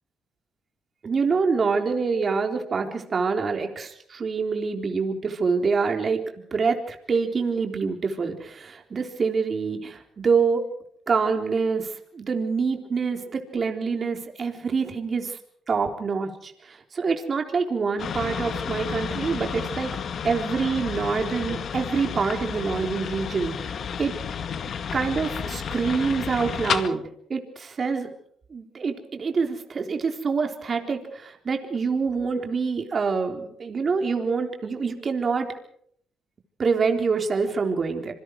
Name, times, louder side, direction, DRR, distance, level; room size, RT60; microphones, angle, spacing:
voice 1, 1.0-6.2 6.5-10.6 11.1-15.4 15.7-19.9 20.2-24.1 24.9-27.0 27.3-28.1 28.5-35.5 36.6-38.1, right 5 dB, 40° right, 4 dB, 3.8 m, -26 dB
sound 1, 18.0-26.9, left 7 dB, 60° left, 2.0 m, -31 dB
27.0 x 24.0 x 4.8 m, 0.64 s
cardioid pair, 90°, 0 cm